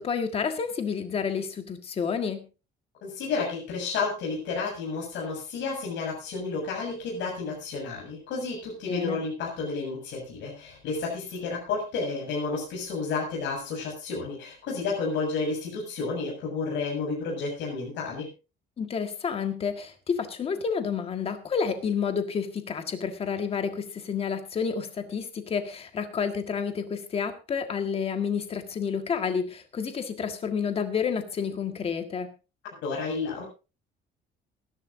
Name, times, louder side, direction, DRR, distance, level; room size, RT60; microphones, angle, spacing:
voice 1, 0.0-2.4 8.9-9.2 18.8-32.3, left 6 dB, 30° left, 7 dB, 1.7 m, -30 dB
voice 2, 3.0-18.3 32.8-33.4, left 4 dB, 65° left, -3 dB, 7.2 m, -31 dB
23.0 x 11.5 x 2.7 m, 0.31 s
cardioid pair, 180°, 20 cm